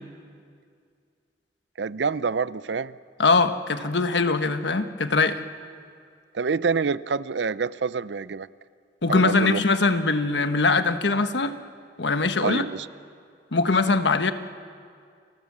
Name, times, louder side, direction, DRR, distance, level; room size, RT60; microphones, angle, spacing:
voice 1, 1.8-3.0 6.3-8.5 9.1-9.6 12.4-12.9, right 5 dB, 75° right, 17 dB, 0.6 m, -27 dB
voice 2, 3.2-5.4 9.0-11.6 12.0-12.6 13.5-14.3, left 3 dB, 80° left, 9 dB, 1.2 m, -22 dB
30.0 x 21.0 x 7.4 m, 2.2 s
head